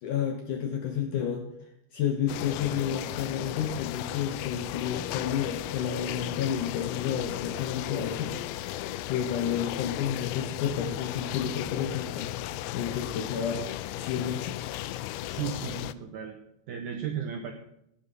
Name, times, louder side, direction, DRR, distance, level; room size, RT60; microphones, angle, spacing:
voice 1, 0.0-1.5 1.9-8.8 9.1-12.3 12.7-13.7 14.0-14.7, left 8 dB, 70° left, 4 dB, 2.0 m, -31 dB
sound 1, 2.3-15.9, left 14 dB, 90° left, 2.9 m, -35 dB
voice 2, 15.3-16.4 16.7-17.5, right 8 dB, 80° right, 4 dB, 1.9 m, -35 dB
17.0 x 7.2 x 6.5 m, 0.78 s
omnidirectional pair, 5.0 m